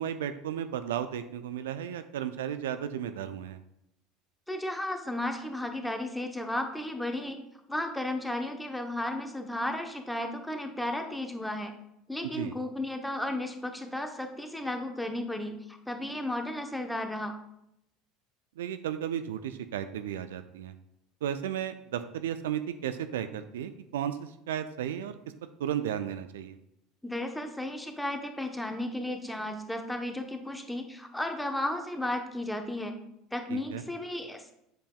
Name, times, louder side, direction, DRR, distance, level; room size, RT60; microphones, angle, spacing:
voice 1, 0.0-3.6 12.3-12.5 18.6-20.7 21.2-25.1 25.6-26.6 33.5-33.8, right 10 dB, 75° right, 11 dB, 0.4 m, -34 dB
voice 2, 4.5-7.4 7.7-11.7 12.1-17.3 27.0-32.9 33.3-34.5, left 1 dB, 5° left, 5 dB, 0.9 m, -34 dB
7.6 x 6.7 x 2.3 m, 0.80 s
hypercardioid pair, 75°, 0 cm